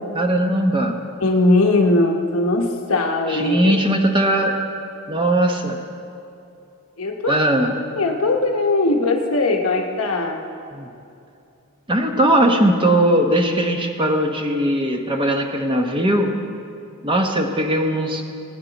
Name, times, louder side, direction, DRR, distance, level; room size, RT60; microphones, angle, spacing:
voice 1, 0.1-1.0 3.3-4.6 5.1-5.8 7.3-7.8 10.7-10.9 11.9-16.3 17.0-18.2, right 1 dB, 20° right, 3 dB, 0.9 m, -19 dB
voice 2, 1.2-3.7 7.0-7.4 8.0-10.4, left 2 dB, 70° left, 2 dB, 1.0 m, -19 dB
19.5 x 9.2 x 4.0 m, 2.6 s
head